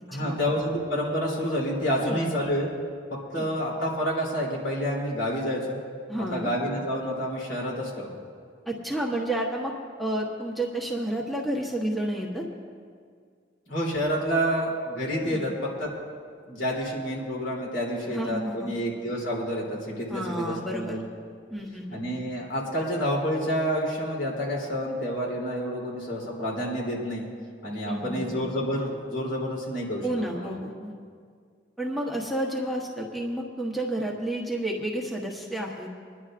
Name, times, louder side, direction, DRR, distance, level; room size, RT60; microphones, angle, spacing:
voice 1, 0.1-2.7 3.3-5.8 6.3-8.1 13.7-15.9 16.5-21.0 21.9-27.3 27.6-30.5, equal, 90° left, -4 dB, 3.2 m, -29 dB
voice 2, 6.1-6.5 8.7-9.7 10.0-12.4 15.2-15.5 18.1-18.7 20.1-21.0 21.5-22.0 27.8-28.4 30.0-30.9 31.8-35.9, right 1 dB, ahead, -2 dB, 1.1 m, -30 dB
26.5 x 10.5 x 2.5 m, 2.1 s
head